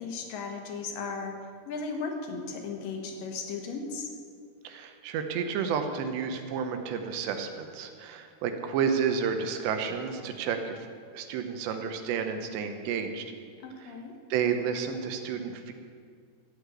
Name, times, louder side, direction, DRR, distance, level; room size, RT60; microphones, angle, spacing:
voice 1, 0.0-1.3 1.7-4.1 13.6-14.1, left 4 dB, 65° left, 3 dB, 2.8 m, -36 dB
voice 2, 4.6-10.9 11.1-13.3 13.8-14.0 14.3-15.7, right 6 dB, 90° right, 6 dB, 3.2 m, -31 dB
14.0 x 8.2 x 8.3 m, 2.1 s
omnidirectional pair, 4.9 m